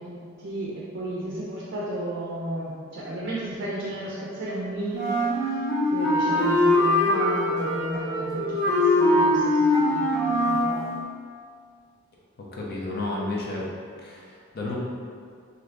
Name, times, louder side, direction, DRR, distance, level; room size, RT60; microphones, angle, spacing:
voice 1, 0.0-5.5 5.9-10.9, right 1 dB, 50° right, -6 dB, 0.4 m, -33 dB
Wind instrument woodwind instrument, 4.9-10.8, left 1 dB, 85° left, 1.2 m, -22 dB
voice 2, 12.5-13.7 14.0-14.8, left 2 dB, 50° left, -4 dB, 0.5 m, -32 dB
2.7 x 2.5 x 3.2 m, 2.1 s
head